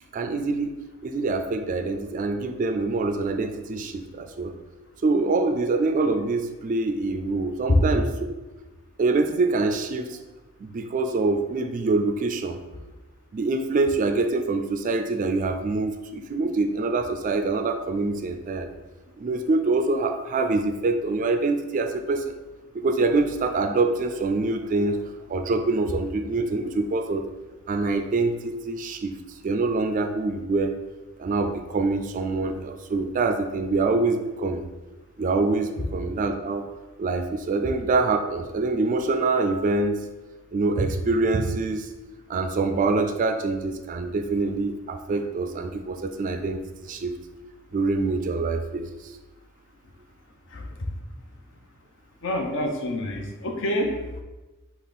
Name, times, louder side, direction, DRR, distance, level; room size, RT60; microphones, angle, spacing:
voice 1, 0.1-0.7 1.0-4.5 5.0-8.1 9.0-10.2 10.6-12.6 13.3-18.7 19.2-22.4 22.7-25.0 25.3-27.2 27.7-29.1 29.4-30.7 31.2-34.7 35.2-36.6 37.0-40.0 40.5-41.9 42.3-47.1 47.7-48.9, right 3 dB, 40° right, 6 dB, 0.3 m, -25 dB
voice 2, 52.2-53.9, left 1 dB, 60° left, 3 dB, 0.7 m, -26 dB
5.3 x 2.4 x 4.0 m, 1.1 s
head